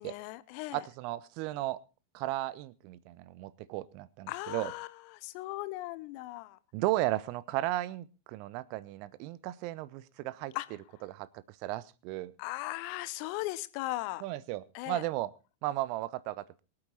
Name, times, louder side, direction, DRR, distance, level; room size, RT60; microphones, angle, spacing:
voice 1, 0.0-0.9 4.3-6.6 10.5-10.7 12.4-14.2 14.7-15.0, left 18 dB, 45° left, 0.9 m, -38 dB
voice 2, 0.7-1.8 2.1-4.7 6.7-10.5 11.1-11.3 11.6-12.3 14.2-15.3 15.6-16.6, right 16 dB, 45° right, 0.8 m, -35 dB
23.5 x 8.8 x 4.2 m
figure-of-eight pair, 90°, 0 cm